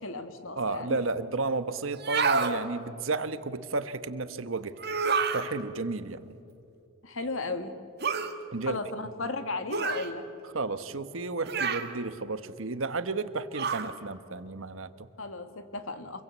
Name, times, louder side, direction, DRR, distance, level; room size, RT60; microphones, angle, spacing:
voice 1, 0.0-1.0 7.0-7.8 8.6-10.2 15.2-16.2, left 3 dB, 80° left, 9 dB, 1.9 m, -35 dB
voice 2, 0.6-4.8 5.3-6.4 8.5-8.8 10.5-15.1, right 3 dB, 75° right, 12 dB, 1.2 m, -32 dB
sound 1, 1.9-2.6 4.8-5.5 8.0-8.3 9.7-10.1 11.5-11.9 13.5-13.9, right 5 dB, 50° right, 1.6 m, -28 dB
27.5 x 22.5 x 8.3 m, 2.6 s
head